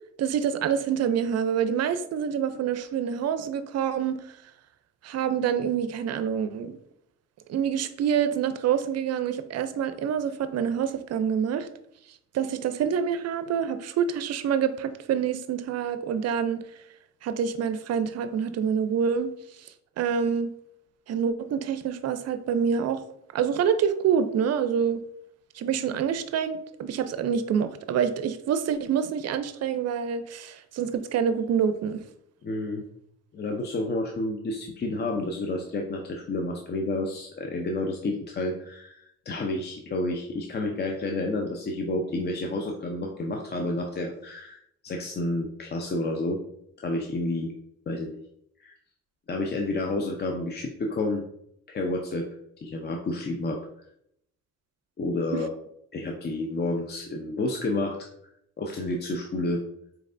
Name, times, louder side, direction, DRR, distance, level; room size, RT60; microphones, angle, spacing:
voice 1, 0.2-4.2 5.0-6.7 7.5-11.7 12.3-16.6 17.2-19.3 20.0-20.5 21.1-23.0 23.3-25.0 25.5-32.0 55.3-55.5, right 7 dB, 55° right, 11 dB, 0.5 m, -26 dB
voice 2, 32.4-32.8 33.3-46.4 46.8-47.5 47.9-48.2 48.6-48.7 49.3-51.2 51.7-52.3 52.6-53.6 55.0-55.5 55.9-58.1 58.6-59.6, left 2 dB, 35° left, 2 dB, 0.5 m, -30 dB
4.5 x 3.1 x 2.5 m, 0.74 s
cardioid pair, 90°, 30 cm